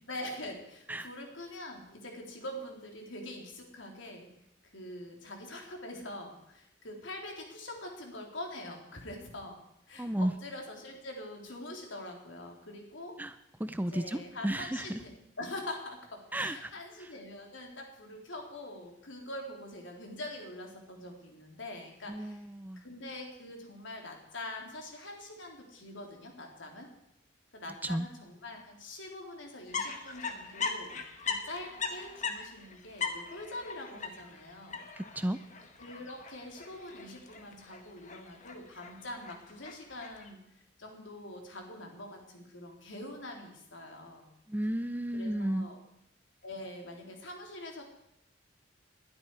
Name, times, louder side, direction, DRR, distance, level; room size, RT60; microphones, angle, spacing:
voice 1, 0.1-4.3 4.7-13.2 13.9-22.5 22.8-26.9 27.5-31.0 31.3-34.8 35.8-40.4 40.8-44.3 45.1-45.8 46.4-47.8, left 1 dB, 70° left, 1 dB, 3.7 m, -44 dB
voice 2, 10.0-10.3 13.2-13.3 13.6-15.0 16.3-16.7 22.1-22.8 27.8-28.1 35.0-35.4 44.5-45.7, right 1 dB, 10° right, 11 dB, 0.5 m, -33 dB
sound 1, 29.7-40.3, left 5 dB, 40° left, 1.6 m, -40 dB
20.5 x 12.5 x 4.8 m, 0.82 s
head